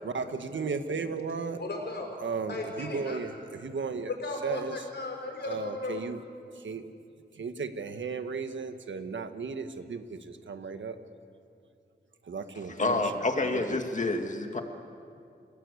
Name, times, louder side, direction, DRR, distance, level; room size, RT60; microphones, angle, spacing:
voice 1, 0.0-1.6 2.2-3.3 3.6-4.1 4.4-4.7 5.4-6.2 6.6-6.9 7.4-11.0 12.3-13.0 13.4-13.8, right 5 dB, 85° right, 8 dB, 1.5 m, -35 dB
voice 2, 1.6-2.1 2.5-3.2 4.1-6.0, left 3 dB, 65° left, 2 dB, 5.6 m, -36 dB
voice 3, 12.8-14.6, left 2 dB, 40° left, 4 dB, 2.0 m, -28 dB
30.0 x 17.5 x 8.3 m, 2.4 s
wide cardioid pair, 90°, 19 cm